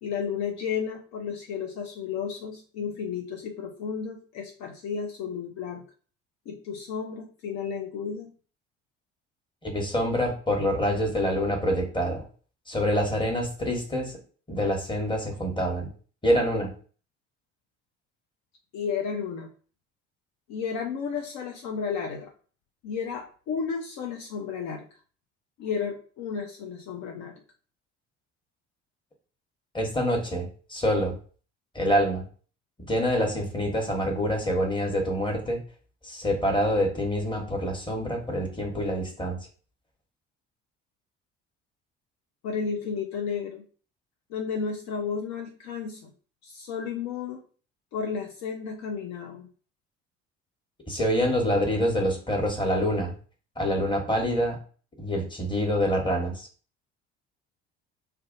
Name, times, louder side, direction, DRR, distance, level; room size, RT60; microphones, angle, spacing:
voice 1, 0.0-5.8 6.5-8.3 18.7-19.5 20.5-22.3 22.8-24.9 25.6-27.4 42.4-43.6 44.3-46.1 46.4-47.4 47.9-49.5 55.1-55.2, left 6 dB, 60° left, 3 dB, 0.5 m, -33 dB
voice 2, 9.6-12.2 12.7-14.1 14.5-15.9 16.2-16.7 29.7-31.2 31.7-32.2 32.9-35.6 36.0-39.4 50.9-53.1 53.6-54.6 55.0-56.5, equal, 15° left, 1 dB, 1.0 m, -26 dB
2.5 x 2.2 x 2.5 m, 0.41 s
hypercardioid pair, 50°, 32 cm